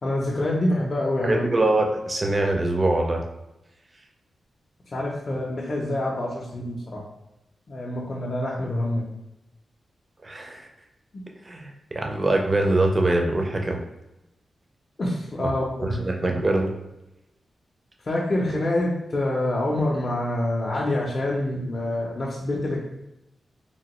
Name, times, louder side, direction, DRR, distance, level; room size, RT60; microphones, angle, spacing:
voice 1, 0.0-1.5 4.9-7.0 7.7-9.1 15.0-16.0 18.0-22.8, left 1 dB, 35° left, -5 dB, 0.4 m, -26 dB
voice 2, 1.2-3.2 10.2-10.7 11.4-13.8 15.4-15.5 15.8-16.7, right 2 dB, 25° right, 2 dB, 0.4 m, -23 dB
2.9 x 2.5 x 2.9 m, 0.93 s
wide cardioid pair, 145°, 0 cm